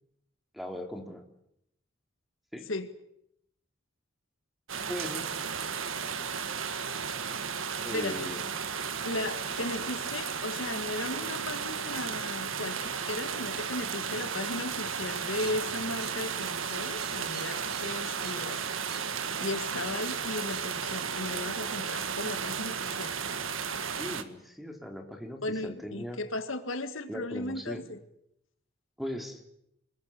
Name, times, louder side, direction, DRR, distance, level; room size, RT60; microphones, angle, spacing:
voice 1, 0.5-1.2 2.5-2.7 4.9-5.3 7.8-8.4 23.9-26.2 27.1-27.8 29.0-29.4, left 1 dB, ahead, 4 dB, 3.2 m, -39 dB
sound 1, 4.7-24.2, right 6 dB, 80° right, 1.7 m, -34 dB
voice 2, 7.9-8.3 9.0-18.6 19.4-23.1 25.4-28.0, left 2 dB, 75° left, 9 dB, 2.1 m, -36 dB
sound 2, 15.1-21.0, right 8 dB, 55° right, 2.6 m, -49 dB
25.5 x 21.0 x 8.6 m, 0.77 s
head